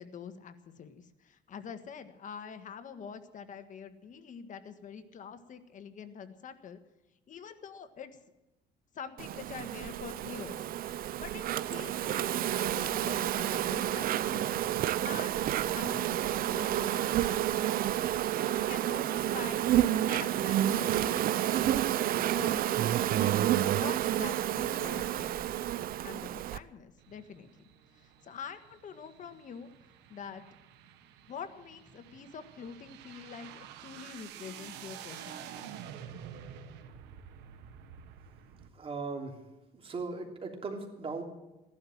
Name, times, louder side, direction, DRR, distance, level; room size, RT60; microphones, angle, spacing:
voice 1, 0.0-6.8 7.3-8.2 8.9-10.7 11.2-14.5 15.0-15.4 15.7-17.6 18.3-21.4 22.2-22.6 23.7-25.6 26.0-27.5 27.9-29.7 30.1-30.4 31.3-35.7, left 6 dB, 50° left, 9 dB, 1.6 m, -45 dB
Insect, 9.2-26.6, right 12 dB, 60° right, 0.6 m, -30 dB
sound 1, 27.0-38.7, right 9 dB, 90° right, 1.5 m, -49 dB
voice 2, 38.7-39.4 39.7-41.2, right 4 dB, 35° right, 2 dB, 3.3 m, -38 dB
15.0 x 11.5 x 7.4 m, 1.0 s
cardioid pair, 110°, 17 cm